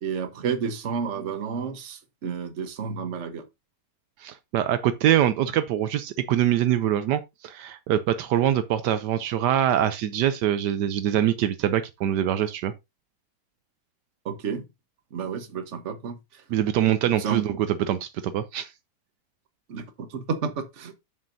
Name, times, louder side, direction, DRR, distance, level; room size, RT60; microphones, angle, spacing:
voice 1, 0.0-3.4 14.2-14.6 15.1-16.4 17.0-17.6 19.7-20.9, right 6 dB, 50° right, 1.3 m, -31 dB
voice 2, 4.2-12.7 16.5-18.7, right 11 dB, 80° right, 1.2 m, -24 dB
8.0 x 7.4 x 2.6 m
omnidirectional pair, 1.8 m